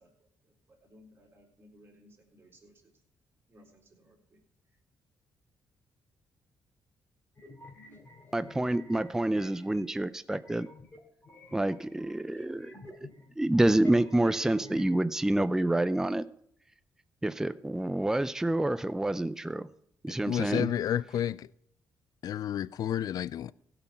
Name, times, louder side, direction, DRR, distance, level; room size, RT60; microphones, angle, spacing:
voice 1, 0.0-2.9 3.5-4.4, equal, 30° right, 3.8 m, -60 dB
sound 1, 7.4-9.9 10.3-14.9, left 1 dB, 30° left, 3.3 m, -50 dB
voice 2, 8.3-10.7 11.5-12.8 13.4-16.3 17.2-19.7 20.0-20.7, right 1 dB, 5° right, 0.4 m, -28 dB
voice 3, 20.1-21.5 22.2-23.5, left 10 dB, 60° left, 0.3 m, -31 dB
16.0 x 6.0 x 5.7 m
cardioid pair, 90°, 7 cm